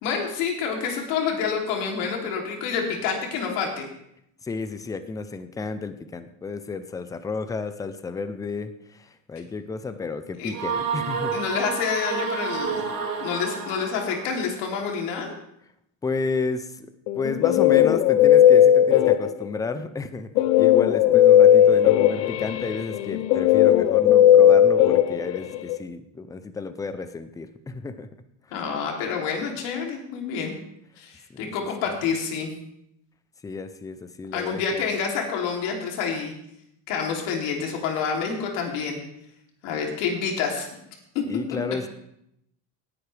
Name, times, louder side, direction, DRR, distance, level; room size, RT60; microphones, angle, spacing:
voice 1, 0.0-3.8 10.4-10.6 11.3-12.9 13.2-15.3 28.5-30.5 31.0-32.5 34.3-36.3 36.9-39.0 39.6-40.7 41.1-41.2, left 6 dB, 70° left, 1 dB, 3.1 m, -28 dB
voice 2, 4.4-11.4 16.0-16.9 17.2-20.3 20.6-28.1 31.3-31.5 33.4-34.6 41.3-41.9, left 4 dB, 10° left, 11 dB, 0.4 m, -32 dB
sound 1, 10.5-14.3, right 6 dB, 50° right, 3.8 m, -30 dB
Guitar, 17.1-19.6 20.4-25.8, left 11 dB, 85° left, 0.8 m, -17 dB
18.0 x 11.0 x 3.3 m, 0.78 s
cardioid pair, 150°, 45 cm